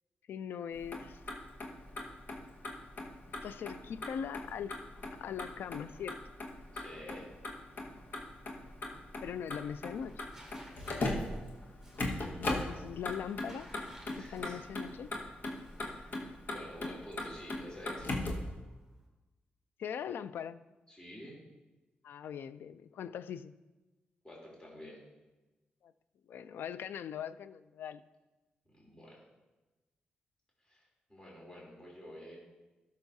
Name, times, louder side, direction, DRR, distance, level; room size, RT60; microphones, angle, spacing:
voice 1, 0.3-1.2 3.3-4.8 5.2-6.2 9.2-10.3 12.4-13.7 14.3-15.1 19.8-20.6 22.0-23.5 26.3-28.0, left 8 dB, 80° left, 0.3 m, -41 dB
Motor vehicle (road), 0.7-18.5, left 2 dB, 65° left, 1.4 m, -40 dB
voice 2, 6.7-7.3 10.7-11.3 14.2-14.6 15.8-18.1 20.9-21.4 24.2-25.0 28.7-29.2 30.6-32.4, equal, 20° left, 3.1 m, -50 dB
Tearing, 7.1-19.1, equal, 10° right, 3.2 m, -60 dB
13.0 x 6.5 x 2.7 m
cardioid pair, 80°, 4 cm